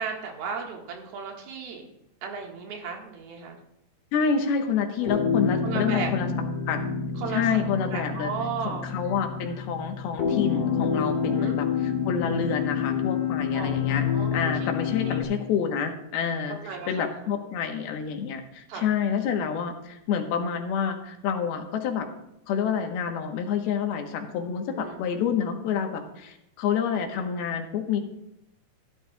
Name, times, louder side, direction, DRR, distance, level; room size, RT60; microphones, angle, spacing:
voice 1, 0.0-1.9 2.2-3.6 5.0-5.1 5.6-6.1 7.2-8.9 11.2-11.6 13.5-13.7 14.1-14.7 15.0-15.2 16.6-17.1 18.7-18.9 24.7-25.0, right 6 dB, 85° right, 1 dB, 3.5 m, -35 dB
voice 2, 4.1-6.8 7.3-8.3 8.6-14.0 14.3-22.1 22.5-28.0, left 7 dB, 90° left, 4 dB, 3.1 m, -28 dB
sound 1, 5.1-15.2, left 6 dB, 50° left, 1.9 m, -28 dB
15.5 x 11.5 x 2.3 m, 0.83 s
omnidirectional pair, 4.3 m